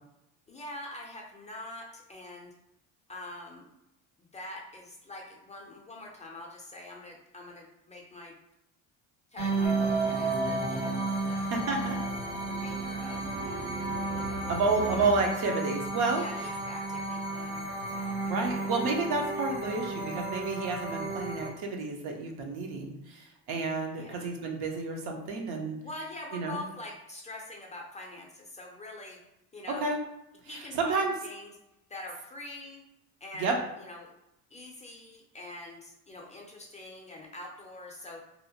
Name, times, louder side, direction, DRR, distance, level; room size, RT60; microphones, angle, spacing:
voice 1, 0.5-2.5 3.1-3.7 4.2-8.3 9.3-11.5 12.4-13.9 14.1-14.5 14.8-15.1 16.1-18.7 24.0-24.3 25.8-29.2 29.5-29.9 30.5-31.5 31.9-32.8 33.2-34.1 34.5-38.2, left 2 dB, 20° left, -1 dB, 0.4 m, -44 dB
sound 1, 9.4-21.5, right 2 dB, 25° right, 0.6 m, -33 dB
sound 2, 9.6-15.1, right 3 dB, 90° right, 1.3 m, -36 dB
voice 2, 11.5-12.0 14.5-16.2 18.2-25.8 26.3-26.6 29.7-30.0 30.5-31.1 33.3-33.6, right 3 dB, 65° right, 2 dB, 0.7 m, -30 dB
2.8 x 2.0 x 2.8 m, 0.86 s
supercardioid pair, 95°, 40 cm